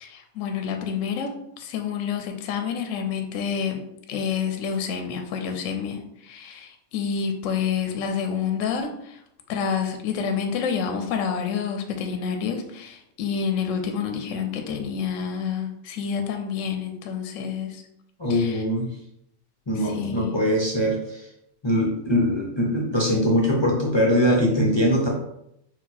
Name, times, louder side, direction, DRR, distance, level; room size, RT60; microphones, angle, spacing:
voice 1, 0.0-1.3 1.6-3.8 4.1-9.2 9.5-17.8 18.3-18.6 19.8-20.4, left 7 dB, 70° left, 5 dB, 0.9 m, -28 dB
voice 2, 18.2-18.9 19.7-21.3 21.6-25.1, equal, 40° left, -3 dB, 0.4 m, -22 dB
4.1 x 2.4 x 4.2 m, 0.78 s
omnidirectional pair, 1.5 m